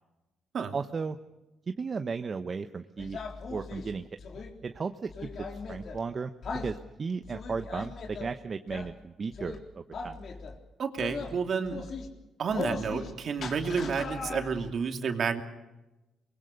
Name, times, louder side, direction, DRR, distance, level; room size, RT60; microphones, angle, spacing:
voice 1, 0.7-1.2 1.7-3.2 3.5-4.1 4.6-5.1 5.4-6.3 6.6-10.2, right 5 dB, 40° right, 8 dB, 1.0 m, -35 dB
sound 1, 3.0-4.5 5.1-6.0 6.4-6.7 7.2-8.3 8.7-8.9 9.3-9.6 9.9-10.6 11.0-11.3 11.6-12.1 12.5-13.1 13.4-14.7, left 4 dB, 55° left, 3.5 m, -38 dB
voice 2, 10.8-11.8 12.4-15.4, right 6 dB, 55° right, 5 dB, 2.7 m, -30 dB
24.0 x 22.0 x 6.5 m, 1.0 s
cardioid pair, 90°, 0 cm